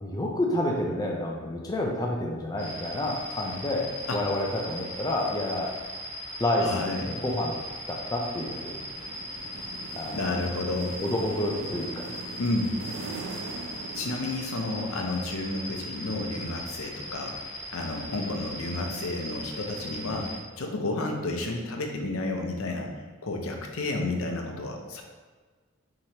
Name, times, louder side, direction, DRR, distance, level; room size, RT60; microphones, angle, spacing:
voice 1, 0.0-3.9 4.1-5.7 6.4-7.6 7.9-8.8 9.9-10.2 11.0-12.1, left 1 dB, 20° left, -1 dB, 0.4 m, -29 dB
sound 1, 2.6-20.4, equal, 15° right, 1.1 m, -39 dB
voice 2, 6.6-7.2 10.1-11.0 12.4-12.7 14.0-17.4 17.7-20.3 20.6-22.9 23.2-25.0, left 2 dB, 90° left, 2 dB, 0.6 m, -31 dB
sound 2, 8.4-14.9, right 3 dB, 75° right, 0.4 m, -42 dB
4.8 x 2.9 x 2.8 m, 1.4 s
head